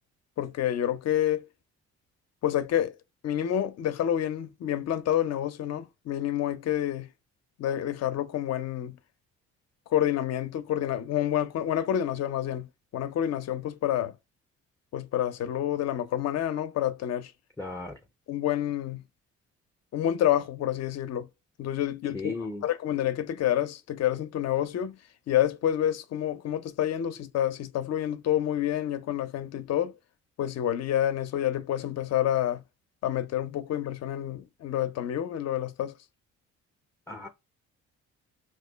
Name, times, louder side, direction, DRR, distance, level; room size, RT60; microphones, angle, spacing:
voice 1, 0.4-1.4 2.4-2.9 3.2-7.1 7.6-9.0 9.9-12.7 12.9-14.1 14.9-17.3 18.3-19.0 19.9-21.3 21.6-22.3 22.6-25.0 25.3-29.9 30.4-32.6 33.0-36.0, left 11 dB, 60° left, 0.5 m, -28 dB
voice 2, 17.6-18.0 22.1-22.7 37.1-37.3, left 3 dB, 10° left, 0.4 m, -35 dB
2.6 x 2.1 x 3.8 m
cardioid pair, 90°, 30 cm